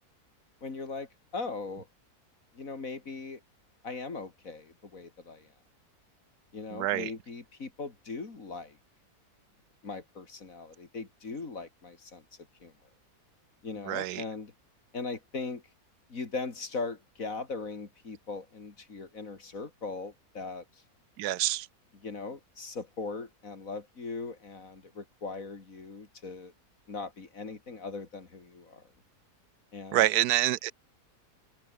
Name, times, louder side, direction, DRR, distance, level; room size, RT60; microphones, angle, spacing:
voice 1, 0.6-1.9 2.5-3.4 3.8-5.5 6.5-8.8 9.8-12.2 12.6-12.7 13.6-14.5 14.9-15.6 16.1-20.6 21.9-26.5 26.9-28.9 29.7-30.1, left 4 dB, 55° left, 3.2 m, -39 dB
voice 2, 6.7-7.1 13.9-14.2 21.2-21.7 29.9-30.7, right 14 dB, 85° right, 1.1 m, -27 dB
omnidirectional pair, 1.7 m